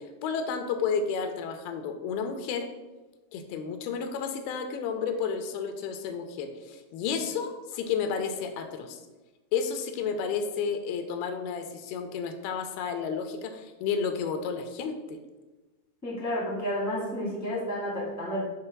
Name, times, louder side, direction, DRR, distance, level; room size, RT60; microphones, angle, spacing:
voice 1, 0.0-2.7 3.3-9.0 9.5-15.2, left 6 dB, 85° left, 7 dB, 2.6 m, -31 dB
voice 2, 16.0-18.5, equal, 10° left, -5 dB, 0.9 m, -31 dB
6.6 x 3.8 x 5.9 m, 1.1 s
omnidirectional pair, 4.4 m